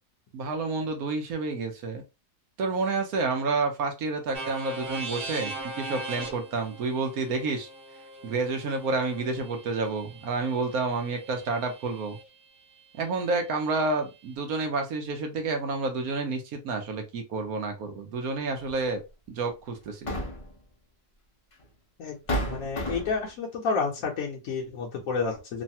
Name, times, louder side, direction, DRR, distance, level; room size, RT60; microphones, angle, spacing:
voice 1, 0.3-2.0 2.6-7.7 8.2-12.2 13.0-19.0 19.3-20.1, right 3 dB, 70° right, 4 dB, 1.1 m, -29 dB
sound 1, 4.3-12.2, right 2 dB, 50° right, 1.0 m, -40 dB
sound 2, 18.7-18.8 19.8-20.6 21.6-21.7 22.3-23.3, equal, 40° left, 0.5 m, -31 dB
voice 2, 22.0-25.6, left 5 dB, 65° left, -2 dB, 1.0 m, -30 dB
3.2 x 2.2 x 2.7 m, 0.26 s
omnidirectional pair, 1.6 m